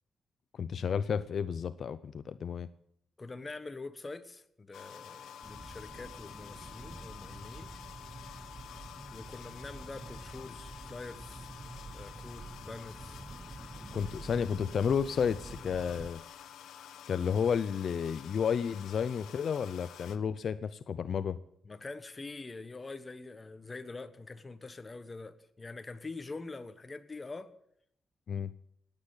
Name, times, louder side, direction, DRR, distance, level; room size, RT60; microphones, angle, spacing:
voice 1, 0.5-2.7 13.9-16.2 17.1-21.4 28.3-28.5, left 7 dB, 60° left, 14 dB, 0.5 m, -32 dB
voice 2, 3.2-7.7 9.1-11.5 11.9-13.2 21.6-27.5, left 3 dB, 25° left, 11 dB, 1.2 m, -45 dB
sound 1, 4.7-20.2, left 9 dB, 85° left, 1.2 m, -50 dB
sound 2, 5.4-16.1, right 3 dB, 20° right, 1.0 m, -48 dB
18.0 x 8.9 x 8.1 m, 0.71 s
cardioid pair, 95°, 0 cm